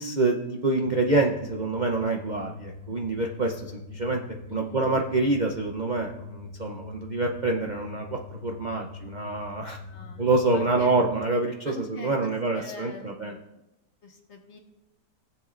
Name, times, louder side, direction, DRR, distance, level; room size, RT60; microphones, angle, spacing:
voice 1, 0.0-4.2 4.5-9.8 10.2-13.4, right 2 dB, 80° right, 1 dB, 0.4 m, -26 dB
sound 1, 0.8-11.3, left 4 dB, 5° left, 2.3 m, -42 dB
voice 2, 4.5-4.8 9.9-10.2 10.5-10.9 11.7-13.4 14.0-14.6, left 3 dB, 45° left, 2 dB, 1.5 m, -43 dB
19.5 x 7.4 x 2.4 m, 0.96 s
omnidirectional pair, 1.8 m